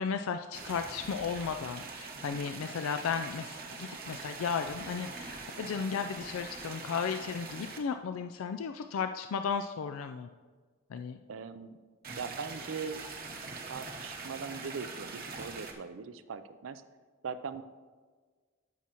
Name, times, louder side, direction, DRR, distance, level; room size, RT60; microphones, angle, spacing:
voice 1, 0.0-10.3 10.9-11.2, left 6 dB, 85° left, 8 dB, 0.4 m, -35 dB
sound 1, 0.5-7.8 12.0-15.7, right 3 dB, 45° right, 0.9 m, -43 dB
voice 2, 11.3-11.8 12.2-13.0 13.6-16.8 17.2-17.6, right 5 dB, 70° right, 12 dB, 0.5 m, -40 dB
14.0 x 6.1 x 2.9 m, 1.5 s
head